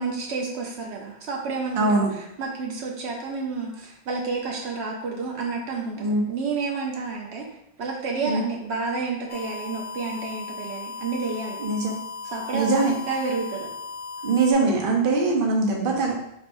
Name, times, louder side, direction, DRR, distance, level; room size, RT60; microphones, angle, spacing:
voice 1, 0.0-2.0 2.4-7.5 7.8-11.6 12.2-12.7 13.1-13.7, right 4 dB, 80° right, -1 dB, 1.0 m, -30 dB
voice 2, 1.8-2.1 6.0-6.2 8.2-8.4 11.6-11.9 12.5-12.9 14.2-16.1, right 3 dB, 55° right, -1 dB, 1.0 m, -22 dB
sound 1, 9.3-14.5, left 4 dB, 60° left, 0.7 m, -37 dB
5.3 x 3.4 x 2.6 m, 0.81 s
omnidirectional pair, 1.1 m